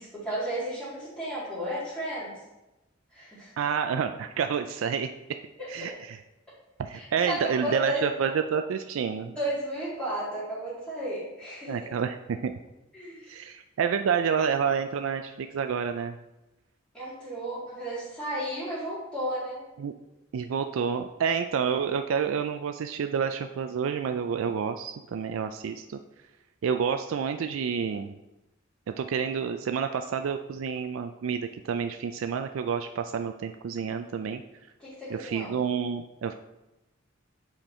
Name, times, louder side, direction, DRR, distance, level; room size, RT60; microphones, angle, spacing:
voice 1, 0.0-2.3 3.1-3.5 5.6-5.9 6.9-8.0 9.4-11.9 12.9-13.3 16.9-19.6 34.8-35.5, right 1 dB, 5° left, -11 dB, 2.1 m, -33 dB
voice 2, 3.6-5.1 5.7-6.2 6.8-9.4 11.7-12.5 13.3-16.2 19.8-19.9 20.3-26.0 26.6-28.1 29.0-34.4 35.1-36.3, right 6 dB, 80° right, 7 dB, 0.4 m, -29 dB
7.8 x 4.5 x 4.2 m, 1.0 s
head